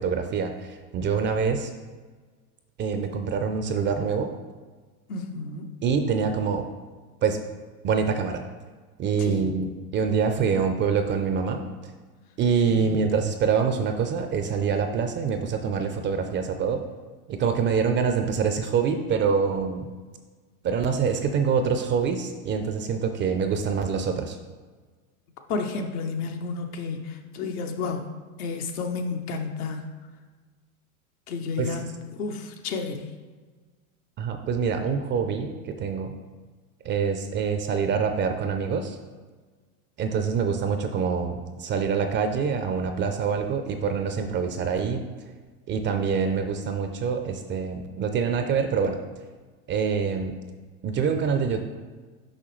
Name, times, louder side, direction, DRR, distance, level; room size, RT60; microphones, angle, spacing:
voice 1, 0.0-1.7 2.8-4.3 5.8-6.7 7.2-7.4 7.8-8.4 9.0-11.6 12.4-16.8 17.3-19.9 20.6-24.4 31.6-31.7 34.2-36.1 36.8-39.0 40.0-45.0 45.7-49.0 49.7-50.3 50.8-51.6, right 6 dB, 25° right, 6 dB, 0.4 m, -25 dB
voice 2, 5.1-5.7 9.2-9.5 12.7-13.0 25.5-28.1 28.4-29.9 31.3-33.1, left 4 dB, 75° left, 4 dB, 0.9 m, -31 dB
6.3 x 5.1 x 3.1 m, 1.4 s
hypercardioid pair, 95°, 45 cm